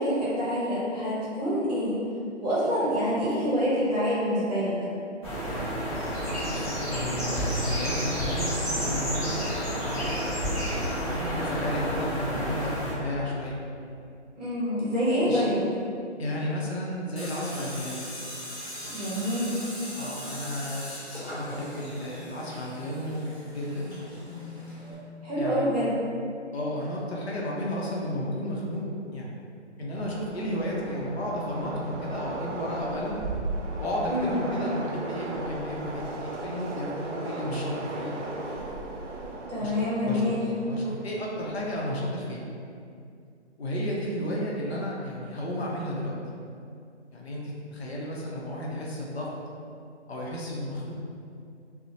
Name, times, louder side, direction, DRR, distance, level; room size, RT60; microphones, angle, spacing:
voice 1, 0.0-1.9 2.4-4.7 14.3-15.7 18.9-19.6 25.2-25.9 34.1-34.4 39.5-40.4, equal, 35° right, -9 dB, 0.8 m, -26 dB
sound 1, 5.2-12.9, equal, 5° left, 1.2 m, -30 dB
voice 2, 6.4-9.4 9.8-10.4 11.0-13.6 15.2-15.5 16.2-18.0 20.0-23.9 25.4-25.7 26.5-28.8 29.1-29.3 29.8-33.2 33.8-38.2 39.6-40.3 40.7-42.4 43.6-46.1 47.1-49.3 50.1-51.0, equal, 60° left, -4 dB, 0.6 m, -33 dB
Tools, 17.2-24.9, left 1 dB, 40° left, 1.1 m, -40 dB
Train, 30.0-42.2, right 2 dB, 85° right, 0.5 m, -37 dB
2.7 x 2.0 x 2.7 m, 2.4 s
hypercardioid pair, 160°, 36 cm